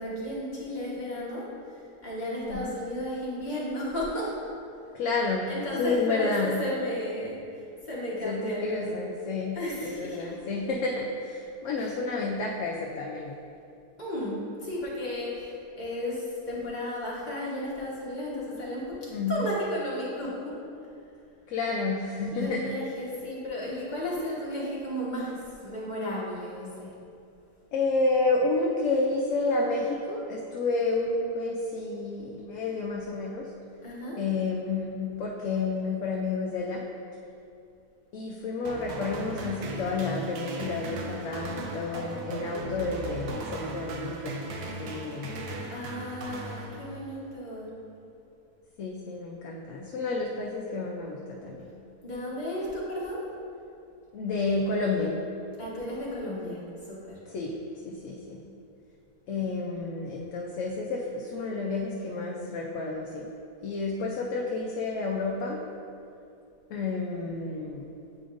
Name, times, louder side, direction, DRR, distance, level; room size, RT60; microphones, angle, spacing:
voice 1, 0.0-1.5 2.0-4.3 5.4-7.4 7.8-8.9 9.5-10.3 14.0-20.5 22.3-26.9 33.8-34.2 45.7-47.7 52.0-53.2 55.6-56.6 56.9-57.2, left 1 dB, 30° left, -7 dB, 1.3 m, -34 dB
voice 2, 4.9-5.5 5.8-6.6 8.2-13.3 19.1-19.5 21.5-22.7 27.7-33.5 34.2-36.8 38.1-45.4 48.8-51.7 54.1-55.2 57.3-57.5 57.8-58.4 59.3-63.3 63.6-65.6 66.7-67.8, left 3 dB, 65° left, -1 dB, 0.9 m, -30 dB
sound 1, 38.6-47.2, right 2 dB, 85° right, 1.2 m, -37 dB
8.5 x 5.0 x 2.6 m, 2.6 s
omnidirectional pair, 1.6 m